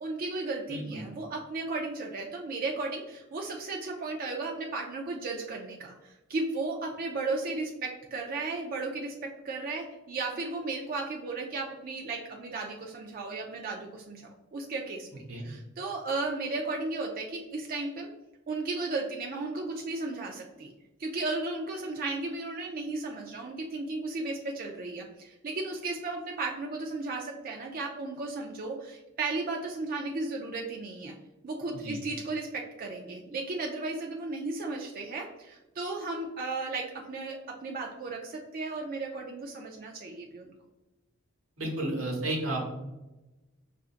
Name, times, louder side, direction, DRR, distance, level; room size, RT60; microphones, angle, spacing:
voice 1, 0.0-9.1 9.4-15.1 15.4-18.1 18.5-20.7 21.0-31.1 31.4-40.5, right 3 dB, 45° right, 0 dB, 0.4 m, -35 dB
voice 2, 0.7-1.0 15.3-15.5 31.7-32.0 41.6-42.6, right 1 dB, 85° right, 0 dB, 1.1 m, -32 dB
5.6 x 2.5 x 2.4 m, 1.0 s
head